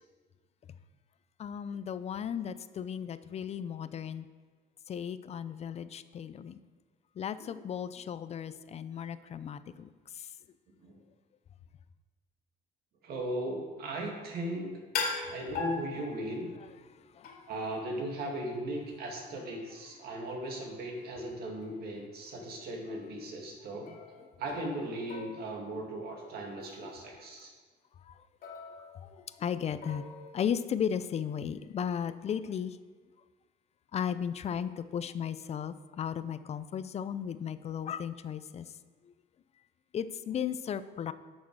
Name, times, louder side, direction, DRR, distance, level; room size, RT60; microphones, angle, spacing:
voice 1, 1.4-4.3 4.9-6.6 7.2-10.3 17.1-17.3 28.0-28.2 29.0-32.8 33.9-38.7 39.9-41.1, left 8 dB, 40° left, 14 dB, 0.5 m, -35 dB
voice 2, 13.0-14.8 15.2-16.5 17.5-23.9 24.4-27.5, right 1 dB, 65° right, 1 dB, 2.1 m, -37 dB
sound 1, 14.9-16.6 17.2-17.7 21.6-21.7 22.3-22.6 23.9-24.8 25.1-26.2 26.6-26.8 28.4-29.4 29.8-30.5, left 4 dB, 65° left, 2.3 m, -40 dB
10.5 x 6.3 x 4.8 m, 1.5 s
cardioid pair, 110°, 17 cm